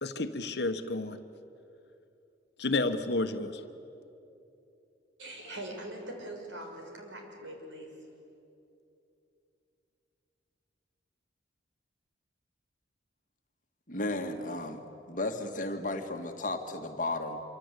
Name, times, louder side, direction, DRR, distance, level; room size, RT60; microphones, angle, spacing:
voice 1, 0.0-1.2 2.6-3.6, left 2 dB, 60° left, 9 dB, 1.3 m, -31 dB
voice 2, 5.2-7.9, right 1 dB, 80° right, 2 dB, 5.7 m, -42 dB
voice 3, 13.9-14.8 15.1-17.4, left 2 dB, 45° left, 4 dB, 1.9 m, -34 dB
26.5 x 25.0 x 8.3 m, 2.8 s
head